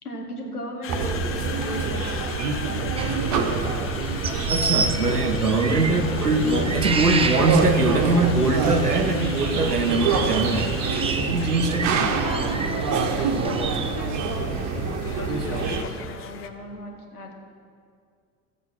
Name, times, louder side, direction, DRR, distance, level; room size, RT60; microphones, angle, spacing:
voice 1, 0.0-3.5 5.9-6.0 12.1-17.3, left 1 dB, 80° left, 1 dB, 2.0 m, -36 dB
Conversation, 0.8-16.5, left 8 dB, 30° left, 0.8 m, -39 dB
sound 1, 0.9-15.8, right 4 dB, 40° right, 1.3 m, -26 dB
sound 2, 3.0-14.0, right 4 dB, 15° right, 0.6 m, -30 dB
voice 2, 4.5-10.8 11.3-12.1, right 2 dB, 90° right, 8 dB, 1.0 m, -22 dB
14.5 x 8.3 x 5.9 m, 2.2 s
figure-of-eight pair, 75°, 44 cm